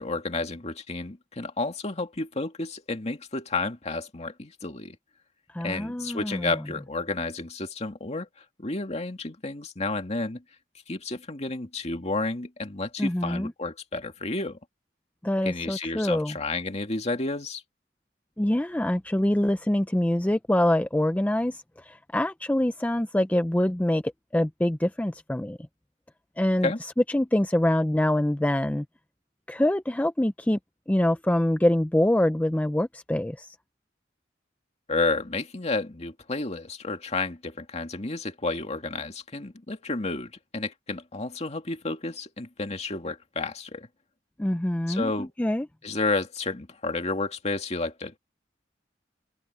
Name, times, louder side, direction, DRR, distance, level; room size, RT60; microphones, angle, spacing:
voice 1, 0.0-5.0 5.6-8.3 8.6-10.4 10.9-14.6 15.4-17.6 26.6-26.8 34.9-43.9 44.9-45.3 45.8-48.2, left 3 dB, 40° left, 2.3 m, -31 dB
voice 2, 5.5-6.5 13.0-13.5 15.2-16.4 18.4-25.6 26.4-26.7 27.1-28.9 29.5-30.6 30.9-33.6 44.4-45.7, left 1 dB, 10° left, 0.5 m, -25 dB
open air
head